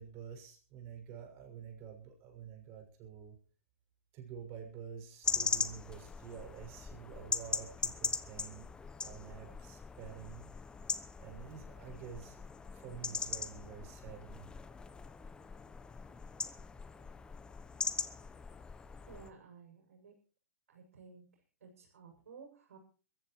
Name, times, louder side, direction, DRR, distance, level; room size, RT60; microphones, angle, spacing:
voice 1, 0.0-3.4 4.1-8.7 9.0-10.4 11.2-12.4 12.7-14.5, right 8 dB, 35° right, 3 dB, 6.5 m, -49 dB
sound 1, 5.2-19.3, left 5 dB, 10° left, 0.9 m, -40 dB
voice 2, 19.1-20.1 20.7-22.8, right 5 dB, 70° right, 0 dB, 7.2 m, -55 dB
23.0 x 15.0 x 3.2 m, 0.38 s
hypercardioid pair, 120°, 8 cm